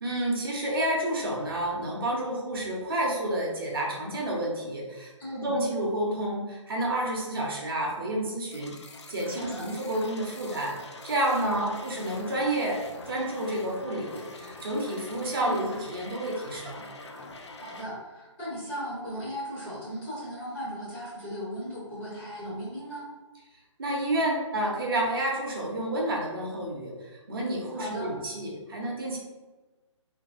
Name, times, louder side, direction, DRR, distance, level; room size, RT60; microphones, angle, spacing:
voice 1, 0.0-10.7 11.0-16.8 23.8-29.2, right 1 dB, 45° right, -2 dB, 0.7 m, -30 dB
voice 2, 5.2-5.5 9.3-9.6 11.4-11.7 15.4-15.7 17.6-23.1 27.7-28.1, equal, 10° left, -10 dB, 0.7 m, -37 dB
sound 1, 8.5-17.8, left 3 dB, 60° left, 0.4 m, -44 dB
2.9 x 2.6 x 2.4 m, 1.2 s
figure-of-eight pair, 140°, 16 cm